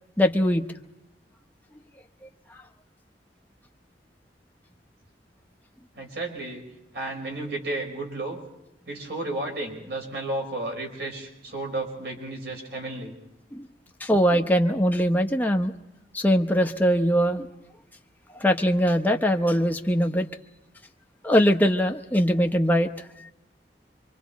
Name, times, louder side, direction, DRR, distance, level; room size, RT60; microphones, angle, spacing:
voice 1, 0.2-0.6 13.5-13.6 14.0-15.7 16.1-17.5 18.4-20.3 21.2-22.9, equal, 10° left, 4 dB, 0.9 m, -21 dB
voice 2, 5.9-6.6 6.9-8.4 8.9-13.2, right 2 dB, 65° right, 2 dB, 4.5 m, -32 dB
26.0 x 25.0 x 4.2 m, 0.91 s
head